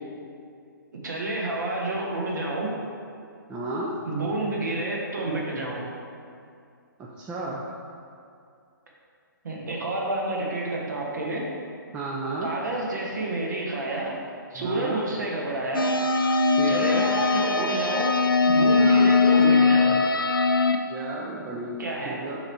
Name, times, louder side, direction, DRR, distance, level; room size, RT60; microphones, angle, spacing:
voice 1, 1.0-2.8 4.0-5.9 9.4-11.5 12.4-14.2 14.5-16.0 16.7-18.2 18.5-20.0 21.8-22.2, right 2 dB, 55° right, -3 dB, 1.2 m, -29 dB
voice 2, 3.5-3.9 7.0-7.6 11.9-12.5 14.5-15.0 16.6-17.1 18.8-19.1 20.9-21.8 22.0-22.4, right 2 dB, 10° right, -5 dB, 0.4 m, -33 dB
sound 1, 15.7-20.8, left 4 dB, 85° left, 0.4 m, -20 dB
7.2 x 3.1 x 4.2 m, 2.4 s
figure-of-eight pair, 130°, 11 cm